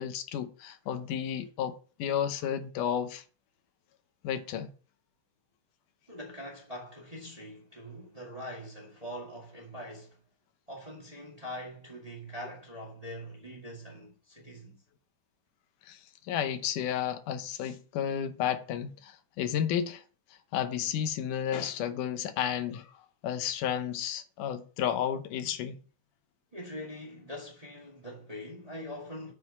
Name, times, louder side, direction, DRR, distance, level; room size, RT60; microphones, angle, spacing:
voice 1, 0.0-3.2 4.2-4.7 15.9-20.0 20.5-22.9 23.2-25.8, left 9 dB, 85° left, 2.4 m, -32 dB
voice 2, 6.1-10.2 10.7-14.8 26.5-29.3, equal, 15° right, 1.6 m, -43 dB
7.4 x 4.9 x 6.5 m
omnidirectional pair, 3.6 m